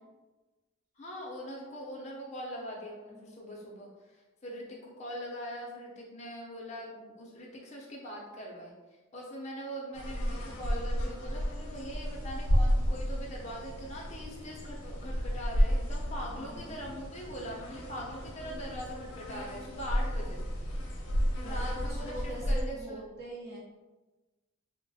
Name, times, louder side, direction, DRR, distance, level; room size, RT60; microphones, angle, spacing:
voice 1, 1.0-8.7 9.1-20.4 21.4-23.0, equal, 35° left, -3 dB, 0.5 m, -42 dB
voice 2, 3.1-3.5 16.2-16.8 21.4-23.6, right 1 dB, 50° right, -5 dB, 0.7 m, -43 dB
sound 1, 9.9-22.6, equal, 90° left, 0.6 m, -32 dB
2.9 x 2.1 x 2.7 m, 1.2 s
head